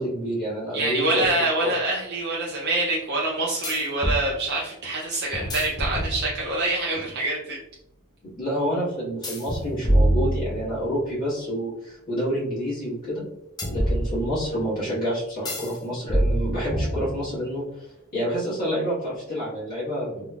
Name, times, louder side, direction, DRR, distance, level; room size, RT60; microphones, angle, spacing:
voice 1, 0.0-1.7 8.4-13.2 13.7-17.6 18.1-20.3, equal, 45° left, -10 dB, 1.4 m, -28 dB
voice 2, 0.7-7.6, right 2 dB, 50° right, -3 dB, 0.5 m, -26 dB
sound 1, 1.2-1.3 3.6-4.2 5.3-6.6 9.2-10.9 13.6-14.6 15.5-15.8 16.1-17.4, equal, 20° left, 0.6 m, -25 dB
3.6 x 2.9 x 2.3 m, 0.83 s
head